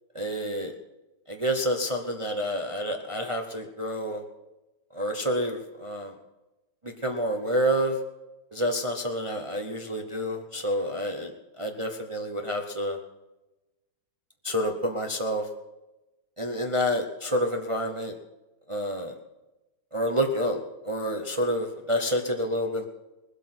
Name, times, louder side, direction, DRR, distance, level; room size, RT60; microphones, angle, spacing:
voice 1, 0.1-0.7 1.3-4.2 4.9-6.1 6.8-8.0 8.5-11.3 11.6-13.0 14.4-15.5 16.4-18.1 18.7-19.1 19.9-22.9, equal, 50° right, 3 dB, 0.3 m, -28 dB
20.0 x 8.2 x 6.0 m, 1.0 s
omnidirectional pair, 2.4 m